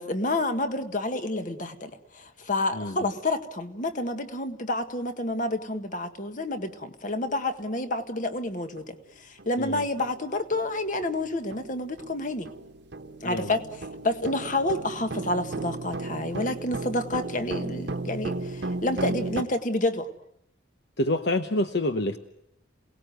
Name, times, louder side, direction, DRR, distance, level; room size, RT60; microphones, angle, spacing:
voice 1, 0.0-12.5 13.2-20.1, left 2 dB, 40° left, 8 dB, 1.7 m, -29 dB
sound 1, 8.8-8.9 9.4-9.6 10.0-19.4, right 2 dB, 60° right, 1.3 m, -35 dB
voice 2, 21.0-22.2, left 1 dB, 60° left, 8 dB, 1.0 m, -27 dB
28.0 x 19.0 x 9.3 m, 0.83 s
head